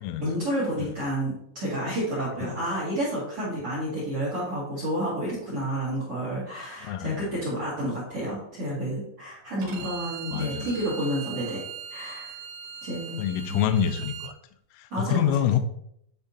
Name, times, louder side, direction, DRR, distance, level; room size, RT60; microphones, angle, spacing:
voice 1, 0.2-11.6 11.9-12.4 12.8-13.2 13.5-13.8 14.9-15.3, right 1 dB, 50° right, -7 dB, 1.7 m, -30 dB
voice 2, 6.8-7.3 9.6-9.9 10.3-10.7 13.2-14.4 14.7-15.6, left 9 dB, 85° left, 9 dB, 3.0 m, -27 dB
Bowed string instrument, 9.6-14.3, right 7 dB, 85° right, 3.3 m, -40 dB
10.0 x 3.6 x 2.7 m, 0.72 s
omnidirectional pair, 5.6 m